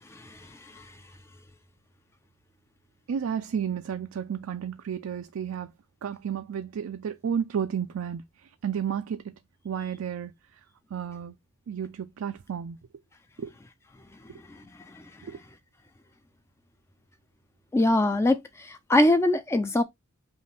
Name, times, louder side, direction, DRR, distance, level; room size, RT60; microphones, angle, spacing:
voice 1, 3.1-5.7 6.0-9.4 9.6-10.6 10.9-11.4 11.7-12.8 13.4-13.5 15.2-15.4, right 8 dB, 75° right, 0.4 m, -32 dB
voice 2, 17.7-19.8, left 1 dB, 10° left, 0.3 m, -23 dB
5.2 x 2.5 x 3.3 m
head